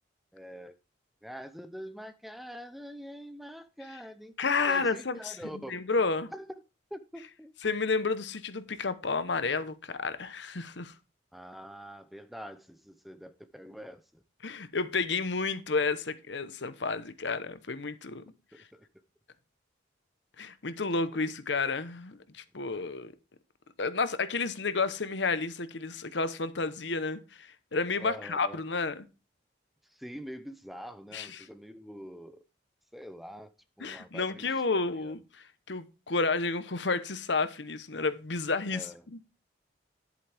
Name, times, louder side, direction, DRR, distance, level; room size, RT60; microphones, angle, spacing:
voice 1, 0.3-0.8 1.2-4.4 4.7-5.8 6.3-6.6 6.9-7.5 11.3-14.2 18.5-18.9 28.0-28.6 29.8-32.4 32.9-33.5 33.8-35.1 38.7-39.0, equal, ahead, 0.6 m, -45 dB
voice 2, 4.4-6.3 7.6-10.9 14.4-18.2 20.4-23.1 23.8-29.1 31.1-31.3 33.8-39.2, left 4 dB, 70° left, 1.0 m, -31 dB
10.5 x 8.1 x 3.4 m
head